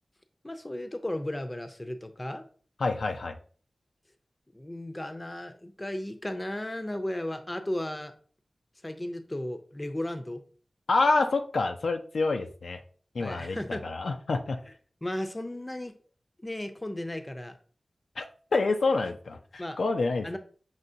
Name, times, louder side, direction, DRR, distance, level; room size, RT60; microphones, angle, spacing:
voice 1, 0.4-2.4 4.5-8.1 8.8-10.4 13.2-13.9 15.0-15.9 16.4-17.6 19.6-19.8 20.2-20.4, left 1 dB, 25° left, 8 dB, 0.5 m, -35 dB
voice 2, 2.8-3.4 10.9-12.8 13.2-14.6 18.2-18.3 18.5-20.3, left 3 dB, 85° left, 5 dB, 0.4 m, -27 dB
5.5 x 2.9 x 2.7 m, 0.43 s
wide cardioid pair, 60°, 0 cm